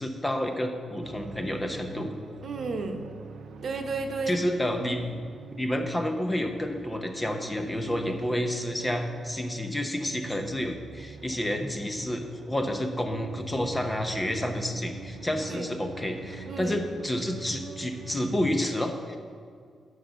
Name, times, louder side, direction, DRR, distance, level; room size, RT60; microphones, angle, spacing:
voice 1, 0.0-2.1 4.3-5.0 5.5-19.2, left 1 dB, 15° left, 4 dB, 0.7 m, -30 dB
sound 1, 1.0-18.4, right 5 dB, 75° right, 0.7 m, -44 dB
voice 2, 2.4-3.0 3.6-4.4 15.5-15.7 16.5-16.8, right 4 dB, 50° right, 4 dB, 0.9 m, -32 dB
10.0 x 6.5 x 5.6 m, 2.2 s
wide cardioid pair, 155°, 0 cm